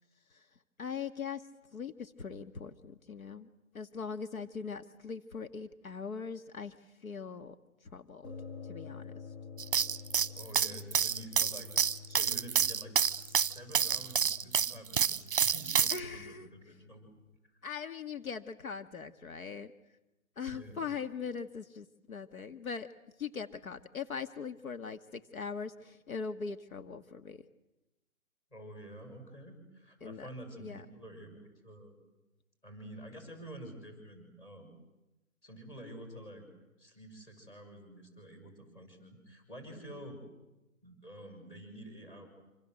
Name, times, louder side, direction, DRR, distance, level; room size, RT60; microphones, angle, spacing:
voice 1, 0.8-1.4 1.7-3.5 3.7-6.8 7.0-7.6 7.8-8.3 8.7-9.1 10.6-10.8 15.9-16.5 17.6-19.7 20.4-22.9 23.2-27.4 30.0-30.3 30.6-30.9 39.7-39.8, left 6 dB, 75° left, 9 dB, 2.0 m, -41 dB
sound 1, 8.2-17.4, left 5 dB, 45° left, 2.5 m, -49 dB
sound 2, 9.6-16.0, right 8 dB, 40° right, 1.0 m, -28 dB
voice 2, 10.3-11.7 12.1-17.1 20.5-20.9 28.5-32.0 32.6-34.7 35.4-36.4 36.8-40.2 40.8-42.3, right 1 dB, 10° left, 4 dB, 6.3 m, -49 dB
27.5 x 27.5 x 7.9 m, 0.96 s
hypercardioid pair, 160°, 42 cm